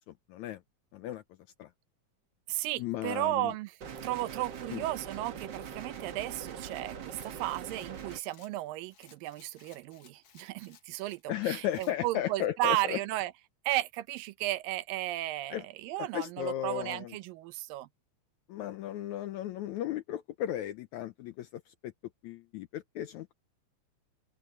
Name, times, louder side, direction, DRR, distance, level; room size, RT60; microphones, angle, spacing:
voice 1, 0.1-0.6 0.9-1.2 1.6-1.7 2.8-3.5 4.7-4.8 11.3-13.0 15.5-15.6 16.0-17.2 18.5-21.9 22.2-23.3, left 12 dB, 75° left, 1.7 m, -35 dB
voice 2, 2.5-3.8 4.0-13.3 13.7-17.9, right 16 dB, 80° right, 2.5 m, -34 dB
sound 1, 3.8-8.2, right 7 dB, 65° right, 1.1 m, -42 dB
Rattle, 7.1-11.2 11.7-12.0, left 8 dB, 55° left, 2.7 m, -61 dB
open air
omnidirectional pair, 4.0 m